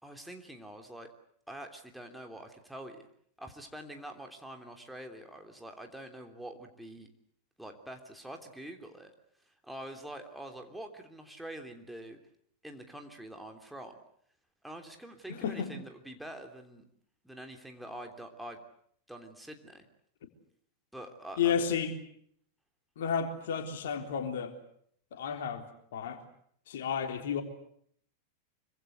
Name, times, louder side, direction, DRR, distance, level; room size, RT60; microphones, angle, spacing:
voice 1, 0.0-1.1 1.5-3.0 3.4-7.1 7.6-9.1 9.5-12.2 12.6-14.0 14.6-16.8 17.2-18.6 19.1-19.9 20.9-21.5, right 1 dB, ahead, 3 dB, 3.2 m, -45 dB
voice 2, 15.3-15.7 21.4-21.9 23.0-24.5 25.1-25.7 25.9-26.2 26.7-27.4, left 7 dB, 60° left, 6 dB, 3.6 m, -32 dB
25.5 x 25.0 x 8.2 m, 0.66 s
figure-of-eight pair, 90°, 0 cm